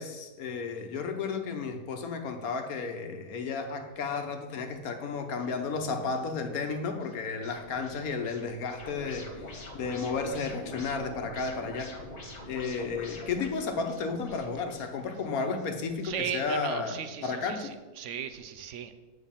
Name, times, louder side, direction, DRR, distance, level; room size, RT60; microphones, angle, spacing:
voice 1, 0.0-11.9 12.5-17.7, left 4 dB, 70° left, 5 dB, 1.3 m, -33 dB
sound 1, 5.4-16.9, left 1 dB, 50° left, 1.6 m, -47 dB
voice 2, 16.0-18.9, right 8 dB, 65° right, 10 dB, 0.8 m, -37 dB
7.2 x 6.0 x 5.6 m, 1.2 s
omnidirectional pair, 1.6 m